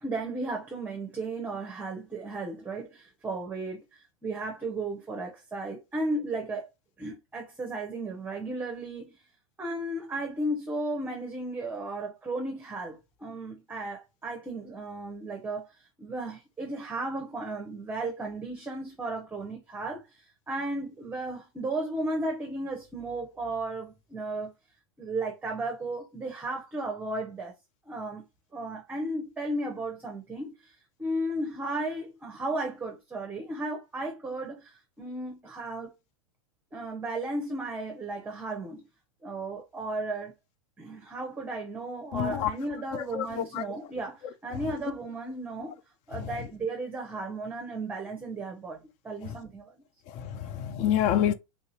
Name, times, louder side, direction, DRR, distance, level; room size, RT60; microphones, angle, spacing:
voice 1, 0.0-6.6 7.0-9.2 9.6-24.5 25.0-27.5 27.9-28.2 28.5-35.9 36.7-38.8 39.2-40.3 40.8-45.8 46.1-49.7, right 2 dB, 10° right, 0.8 m, -35 dB
voice 2, 42.1-42.5 42.9-43.6 50.2-51.3, left 10 dB, 40° left, 0.5 m, -27 dB
3.4 x 2.7 x 2.8 m
hypercardioid pair, 120°, 17 cm